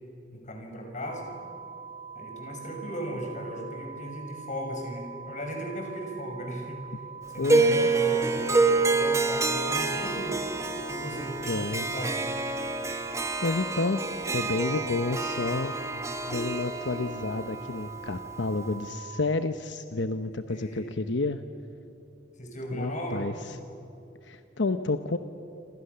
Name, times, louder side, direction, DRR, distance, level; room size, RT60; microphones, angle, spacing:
voice 1, 0.3-1.3 2.1-10.4 10.9-12.2 20.5-20.9 22.4-23.3, equal, 40° left, 2 dB, 6.0 m, -37 dB
sound 1, 1.0-19.2, right 6 dB, 35° right, 2.0 m, -43 dB
voice 2, 7.4-7.9 11.4-11.9 12.9-13.1 13.4-14.0 14.3-15.7 16.3-21.4 22.7-23.6 24.2-25.2, left 3 dB, 85° left, 9 dB, 0.9 m, -30 dB
Harp, 7.4-18.7, right 3 dB, 15° right, 1.3 m, -28 dB
28.0 x 26.5 x 6.9 m, 2.8 s
head